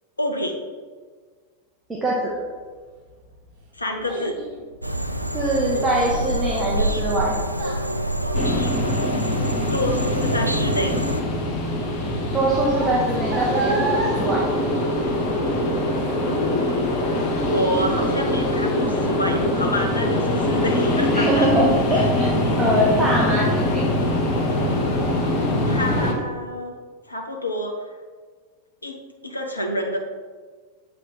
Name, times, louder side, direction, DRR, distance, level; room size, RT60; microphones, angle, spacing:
voice 1, 0.2-0.6 3.7-4.4 9.7-11.0 16.3-16.9 17.5-21.5 21.9-22.1 25.7-26.8 27.1-27.9 28.8-30.0, left 1 dB, 80° left, 2 dB, 0.6 m, -27 dB
voice 2, 1.9-2.3 5.3-7.4 12.3-14.4 21.1-22.3 22.6-23.9, right 1 dB, 15° right, -5 dB, 0.9 m, -22 dB
Child speech kid speaking, 2.9-15.5 15.9-16.3 16.8-16.9, right 3 dB, 40° right, 1.4 m, -34 dB
sound 1, 4.8-11.2, equal, 90° right, 0.3 m, -26 dB
sound 2, 8.3-26.1, left 1 dB, 40° left, 1.0 m, -23 dB
7.5 x 3.3 x 3.9 m, 1.5 s
figure-of-eight pair, 90°, 0 cm